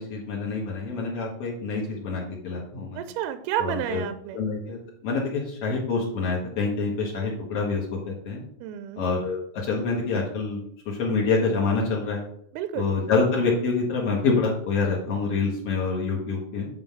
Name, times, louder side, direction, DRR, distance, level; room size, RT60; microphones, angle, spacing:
voice 1, 0.0-3.0 3.6-4.0 4.3-8.4 9.0-12.2 12.7-16.7, left 4 dB, 85° left, -3 dB, 1.3 m, -26 dB
voice 2, 3.0-4.4 8.6-9.1 12.5-13.0, right 10 dB, 85° right, 10 dB, 2.2 m, -31 dB
8.7 x 3.8 x 7.0 m, 0.68 s
omnidirectional pair, 5.0 m